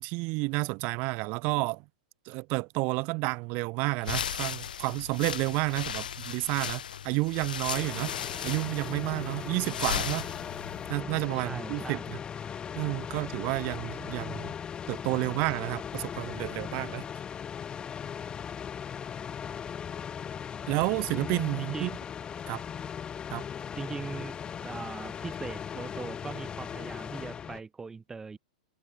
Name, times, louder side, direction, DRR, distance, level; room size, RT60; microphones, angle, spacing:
voice 1, 0.0-1.9 2.3-8.1 8.4-10.3 10.9-12.2 12.7-14.5 14.9-17.1 20.7-21.9 22.5-22.6 23.3-23.4, right 27 dB, 45° right, 1.7 m, -30 dB
sound 1, 4.0-10.9, left 9 dB, 85° left, 2.0 m, -36 dB
sound 2, 7.7-27.6, left 8 dB, 20° left, 1.4 m, -38 dB
voice 2, 11.3-12.0 21.7-21.9 23.7-24.3 24.6-28.4, right 4 dB, 10° right, 1.1 m, -40 dB
hypercardioid pair, 130°, 5 cm